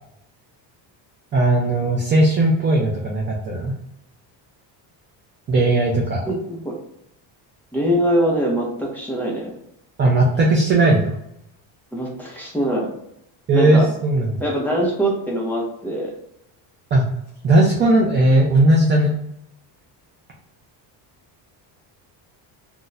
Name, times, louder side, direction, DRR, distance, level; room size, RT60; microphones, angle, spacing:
voice 1, 1.3-3.7 5.5-6.2 10.0-11.2 13.5-14.4 16.9-17.0 17.4-19.1, right 2 dB, 25° right, -1 dB, 0.4 m, -17 dB
voice 2, 6.3-6.7 7.7-9.5 11.9-12.9 13.5-13.9 14.4-16.1, equal, 5° left, -4 dB, 0.7 m, -23 dB
2.6 x 2.2 x 3.9 m, 0.78 s
cardioid pair, 150°, 46 cm